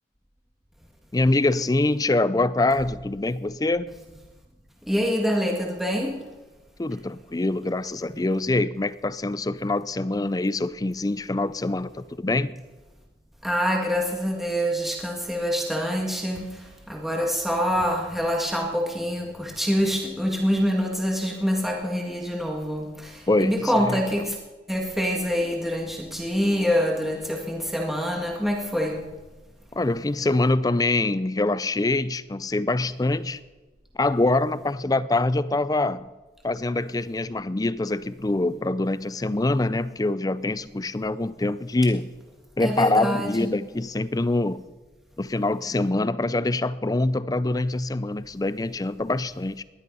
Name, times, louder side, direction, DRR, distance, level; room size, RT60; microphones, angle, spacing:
voice 1, 1.1-3.9 6.8-12.6 23.3-24.0 29.7-33.4 33.9-36.1 36.4-42.1 42.6-44.6 45.2-49.6, left 2 dB, 20° left, 17 dB, 0.4 m, -24 dB
voice 2, 4.9-6.2 13.4-24.4 24.7-29.0 42.6-43.5, equal, ahead, 0 dB, 1.8 m, -25 dB
19.5 x 12.0 x 5.5 m, 1.2 s
head